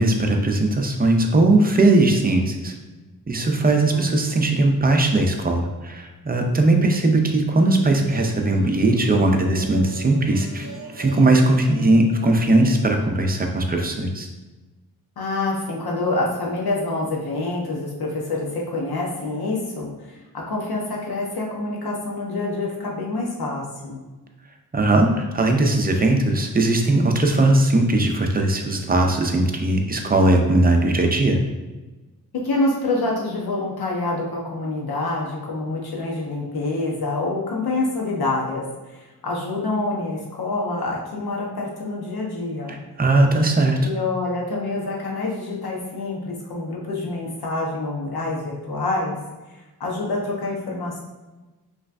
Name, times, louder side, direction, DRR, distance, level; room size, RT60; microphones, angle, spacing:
voice 1, 0.0-2.7 3.3-10.7 11.0-14.3 24.7-31.4 42.7-43.8, right 2 dB, 25° right, 3 dB, 0.5 m, -19 dB
voice 2, 3.9-4.5 15.2-24.0 32.3-42.8 43.8-49.2 49.5-51.0, left 2 dB, 85° left, -2 dB, 1.1 m, -27 dB
sound 1, 7.5-13.1, left 1 dB, 45° right, 0.8 m, -37 dB
5.5 x 3.2 x 2.5 m, 1.2 s
wide cardioid pair, 160°, 37 cm